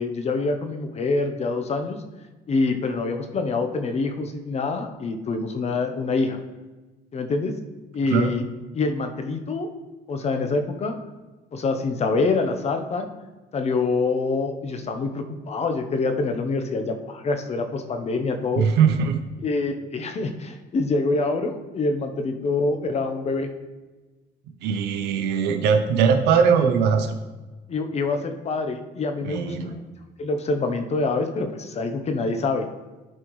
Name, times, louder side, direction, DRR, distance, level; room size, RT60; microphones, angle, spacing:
voice 1, 0.0-2.0 2.5-6.4 7.1-7.6 7.9-8.4 8.7-9.7 10.1-10.9 11.5-13.1 13.5-18.7 19.4-23.5 27.7-29.8 30.2-32.7, left 3 dB, 40° left, 6 dB, 0.8 m, -25 dB
voice 2, 18.6-19.2 24.6-27.2 29.2-29.7, right 6 dB, 85° right, 7 dB, 0.8 m, -20 dB
11.0 x 4.5 x 3.1 m, 1.2 s
cardioid pair, 110°, 17 cm